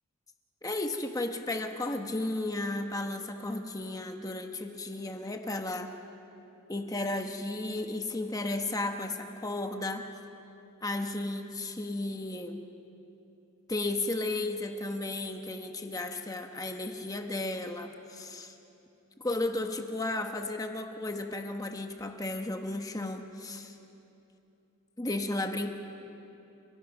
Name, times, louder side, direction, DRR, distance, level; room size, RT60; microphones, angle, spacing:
voice 1, 0.6-6.0 6.7-10.1 10.8-12.6 13.7-18.5 19.2-23.7 25.0-25.7, left 2 dB, 15° left, 5 dB, 1.0 m, -34 dB
30.0 x 17.0 x 6.0 m, 2.9 s
head